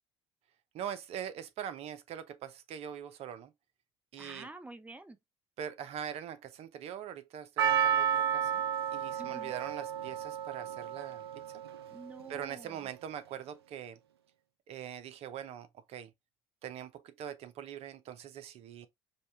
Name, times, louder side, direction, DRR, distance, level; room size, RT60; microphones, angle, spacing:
voice 1, 0.7-3.5 4.1-4.5 5.6-8.6 8.9-11.4 12.3-14.0 14.7-16.1 16.6-18.9, right 9 dB, 55° right, 0.8 m, -42 dB
voice 2, 4.2-5.2 9.2-9.5 11.9-12.9, right 2 dB, 10° right, 0.9 m, -48 dB
Percussion, 7.6-11.9 12.2-12.3, right 8 dB, 85° right, 0.4 m, -32 dB
5.3 x 2.4 x 3.3 m
figure-of-eight pair, 55°, 13 cm